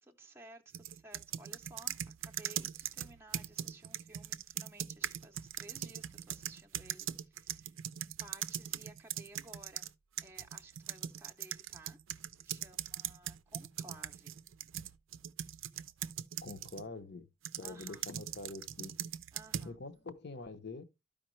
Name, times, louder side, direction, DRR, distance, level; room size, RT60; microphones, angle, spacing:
voice 1, 0.0-9.9 10.2-12.0 12.4-14.4 17.6-18.0 19.3-19.8, right 2 dB, 10° right, 0.6 m, -56 dB
sound 1, 0.7-9.9 10.2-16.9 17.5-19.7, right 11 dB, 70° right, 0.5 m, -41 dB
voice 2, 16.4-17.3 17.6-18.9 19.6-20.8, left 3 dB, 55° left, 0.8 m, -45 dB
12.5 x 5.1 x 3.1 m
head